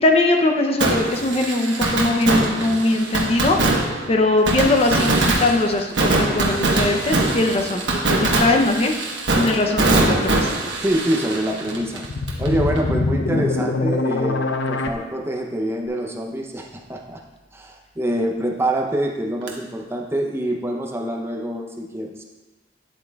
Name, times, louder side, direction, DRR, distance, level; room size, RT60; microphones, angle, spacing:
voice 1, 0.0-3.6 4.1-8.9 9.3-10.5, left 2 dB, 35° left, 3 dB, 0.6 m, -20 dB
Fireworks, 0.8-12.5 12.8-12.9 19.5-19.6, right 2 dB, 80° right, 1.1 m, -22 dB
voice 2, 10.8-12.1 12.4-17.2 17.5-22.2, right 1 dB, 15° right, 1 dB, 0.6 m, -25 dB
sound 1, 11.6-14.9, left 3 dB, 85° left, 0.6 m, -23 dB
9.3 x 7.8 x 2.3 m, 1.2 s
head